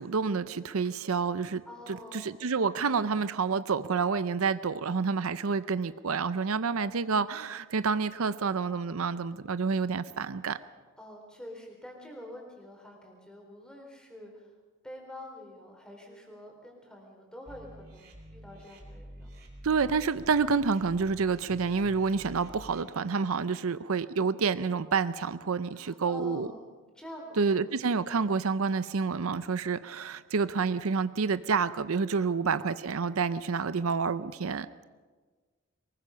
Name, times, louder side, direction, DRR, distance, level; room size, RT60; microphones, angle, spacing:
voice 1, 0.0-1.6 2.1-10.6 19.6-26.5 27.4-34.7, right 5 dB, 80° right, 14 dB, 0.6 m, -28 dB
voice 2, 1.7-2.5 11.0-14.5 14.8-19.3 25.7-27.6 32.1-32.8, left 1 dB, 5° left, 0 dB, 3.7 m, -47 dB
sound 1, 17.5-22.8, equal, 45° right, 2.9 m, -49 dB
23.0 x 20.0 x 5.7 m, 1.4 s
head